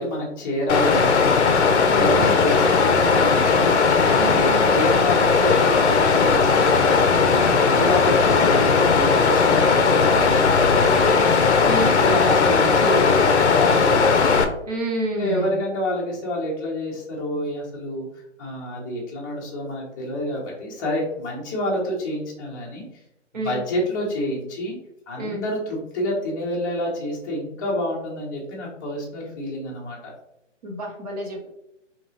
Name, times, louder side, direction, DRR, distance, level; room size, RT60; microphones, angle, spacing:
voice 1, 0.0-3.9 4.3-14.1 15.1-18.1 18.4-22.8 23.4-24.8 25.1-30.1, left 1 dB, 15° left, -4 dB, 0.7 m, -28 dB
Water, 0.7-14.4, left 5 dB, 60° left, 0.6 m, -18 dB
voice 2, 1.9-2.3 4.1-4.7 11.6-11.9 14.7-15.6 23.3-23.6 25.2-25.4 30.6-31.5, right 1 dB, 30° right, 0 dB, 0.8 m, -28 dB
3.7 x 2.9 x 2.8 m, 0.82 s
figure-of-eight pair, 140°, 37 cm